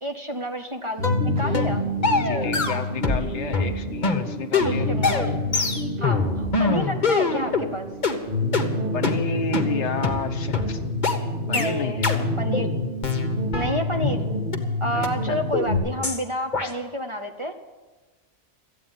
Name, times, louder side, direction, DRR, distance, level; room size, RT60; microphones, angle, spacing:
voice 1, 0.0-1.8 4.6-5.3 6.0-7.9 11.5-12.0 12.4-12.7 13.5-14.3 14.8-17.6, equal, 30° right, 5 dB, 0.9 m, -29 dB
sound 1, 1.0-1.2 1.5-1.7 2.0-3.3 3.5-7.7 8.0-8.2 8.5-8.7 9.0-9.2 9.5-9.7 10.0-10.2 10.5-10.7 11.0-11.2 11.5-11.7 12.0-12.2 12.5-12.7 13.0-14.2 14.5-14.6 15.0-15.1 15.5-15.7 16.0-16.2 16.5-16.7, left 4 dB, 40° left, 1.4 m, -24 dB
sound 2, 1.0-15.8, left 1 dB, 55° right, 3.8 m, -28 dB
sound 3, 1.3-2.6 4.6-5.7 7.2-8.3 9.8-12.5, left 1 dB, 85° right, 3.6 m, -45 dB
voice 2, 2.2-5.2 8.9-10.8 11.5-12.3 14.9-15.4, left 4 dB, 70° left, 9 dB, 1.3 m, -31 dB
14.0 x 8.8 x 9.5 m, 1.2 s
omnidirectional pair, 1.2 m